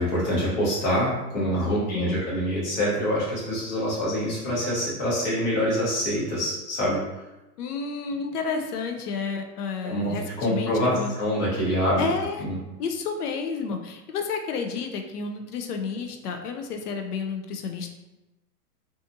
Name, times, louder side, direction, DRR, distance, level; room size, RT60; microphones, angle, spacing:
voice 1, 0.0-7.0 9.8-12.0 12.4-12.5, equal, 30° left, -7 dB, 0.8 m, -25 dB
voice 2, 1.7-2.2 7.6-11.1 12.0-12.5 12.8-17.9, left 5 dB, 70° left, 4 dB, 0.6 m, -31 dB
2.7 x 2.4 x 2.5 m, 1.0 s
hypercardioid pair, 165°, 48 cm